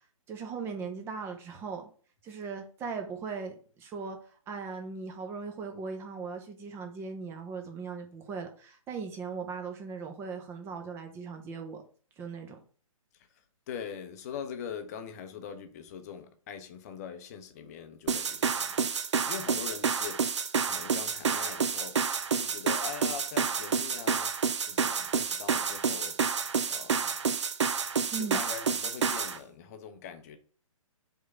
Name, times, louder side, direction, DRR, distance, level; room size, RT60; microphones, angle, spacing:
voice 1, 0.3-1.9 2.2-4.2 4.5-11.8 12.2-12.6 28.1-28.4, right 5 dB, 15° right, 0.8 m, -38 dB
voice 2, 13.7-20.3 20.6-24.4 24.6-26.2 26.6-27.2 28.2-30.4, left 7 dB, 30° left, 0.7 m, -42 dB
sound 1, 18.1-29.4, right 6 dB, 55° right, 0.6 m, -29 dB
4.7 x 3.7 x 5.5 m
figure-of-eight pair, 130°, 18 cm